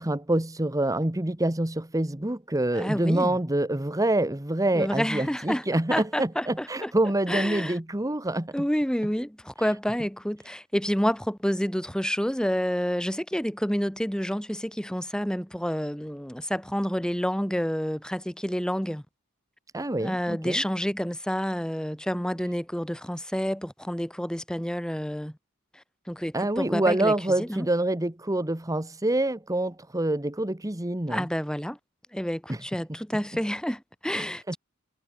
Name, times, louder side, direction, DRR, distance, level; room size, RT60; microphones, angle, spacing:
voice 1, 0.0-8.5 19.7-20.6 26.3-31.3 32.5-32.6 34.1-34.6, right 1 dB, 15° right, 1.2 m, -26 dB
voice 2, 2.7-3.4 4.7-5.6 5.9-6.9 7.3-7.8 8.5-19.0 20.0-25.4 25.7-27.7 31.1-31.8 32.1-34.6, equal, 5° left, 2.2 m, -29 dB
head